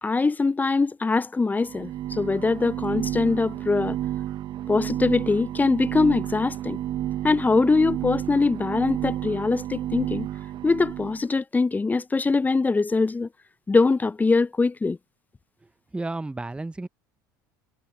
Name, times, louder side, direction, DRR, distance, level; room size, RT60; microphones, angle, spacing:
voice 1, 0.0-4.0 4.7-6.8 7.2-10.3 10.6-13.3 13.7-15.0, left 3 dB, 15° left, 0.8 m, -22 dB
sound 1, 1.6-11.2, right 12 dB, 45° right, 1.4 m, -31 dB
voice 2, 15.6-16.9, right 2 dB, 10° right, 1.0 m, -33 dB
figure-of-eight pair, 70°, 11 cm